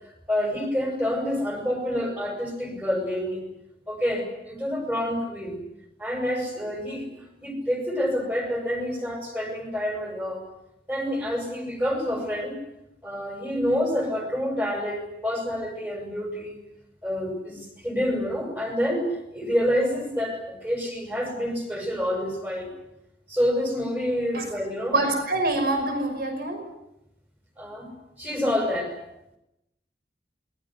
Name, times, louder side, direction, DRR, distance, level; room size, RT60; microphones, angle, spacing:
voice 1, 0.3-3.4 3.9-5.6 6.0-7.1 7.4-10.4 10.9-12.6 13.0-16.6 17.0-22.7 23.3-25.0 27.6-29.0, equal, 10° right, 4 dB, 7.3 m, -28 dB
voice 2, 24.9-26.6, right 2 dB, 60° right, 6 dB, 5.7 m, -25 dB
28.0 x 21.5 x 7.9 m, 0.86 s
head